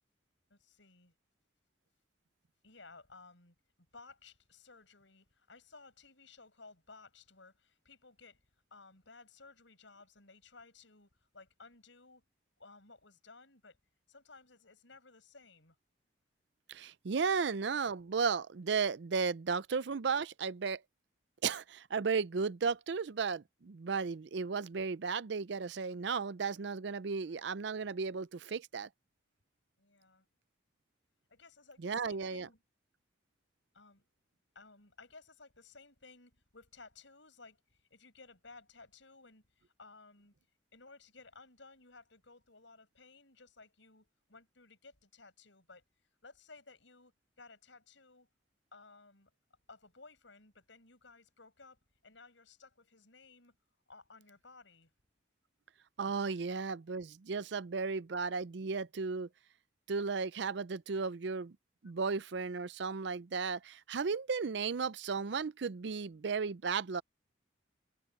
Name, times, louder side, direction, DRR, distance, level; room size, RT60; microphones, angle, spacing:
voice 1, 0.5-1.1 2.6-3.6 3.9-8.4 8.7-12.2 12.6-13.8 14.1-15.8 29.8-30.2 31.3-32.6 33.7-34.0 34.5-40.3 40.7-45.8 46.2-48.3 48.7-49.3 49.7-53.6 53.9-54.9, left 3 dB, 75° left, 5.8 m, -57 dB
voice 2, 16.7-20.8 21.4-28.9 31.8-32.5 56.0-59.3 59.9-61.6 61.8-67.0, right 5 dB, 65° right, 0.5 m, -34 dB
head